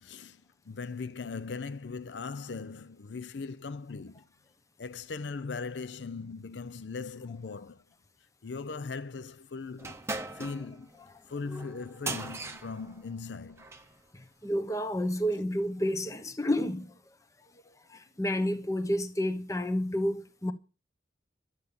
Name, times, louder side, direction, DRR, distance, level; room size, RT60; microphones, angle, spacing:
voice 1, 0.0-4.2 4.8-7.8 8.4-10.0 10.3-10.9 11.3-13.7, left 4 dB, 80° left, 0.6 m, -39 dB
sound 1, 9.8-13.9, right 3 dB, 15° right, 0.9 m, -40 dB
voice 2, 14.1-17.0 17.7-20.5, equal, 20° left, 1.0 m, -30 dB
12.5 x 8.1 x 7.0 m
head